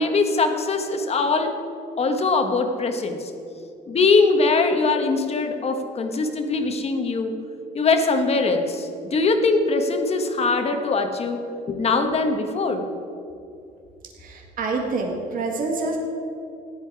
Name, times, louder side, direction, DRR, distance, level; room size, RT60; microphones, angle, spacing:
voice 1, 0.0-1.5 2.0-3.3 3.9-7.4 7.7-11.4 11.7-12.9, left 3 dB, 35° left, 6 dB, 1.4 m, -22 dB
voice 2, 14.2-16.0, right 3 dB, 55° right, 1 dB, 1.9 m, -27 dB
15.0 x 10.5 x 4.8 m, 2.7 s
cardioid pair, 110°, 17 cm